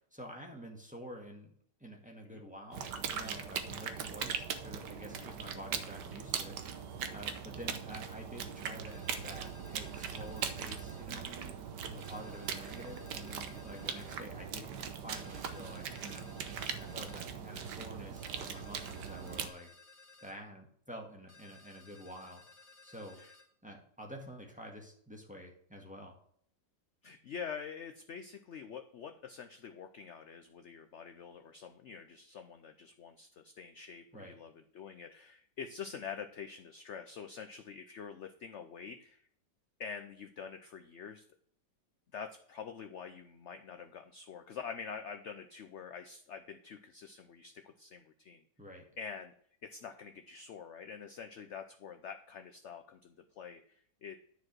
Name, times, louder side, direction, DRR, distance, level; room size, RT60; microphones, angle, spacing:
voice 1, 0.1-1.5 1.8-11.3 11.9-14.7 15.0-16.3 16.8-19.7 20.2-23.2 23.6-26.2 34.1-34.3 48.6-48.9, equal, 5° right, 0 dB, 1.7 m, -49 dB
sound 1, 2.7-19.5, right 7 dB, 75° right, 1.5 m, -40 dB
sound 2, 8.9-11.1 12.0-14.2 15.1-17.3 18.2-20.4 21.3-23.5, left 4 dB, 40° left, 2.1 m, -58 dB
voice 2, 27.0-39.2 39.8-41.2 42.1-48.4 49.0-49.3 49.6-54.2, left 6 dB, 65° left, 7 dB, 0.7 m, -46 dB
10.5 x 4.8 x 6.1 m, 0.62 s
omnidirectional pair, 1.9 m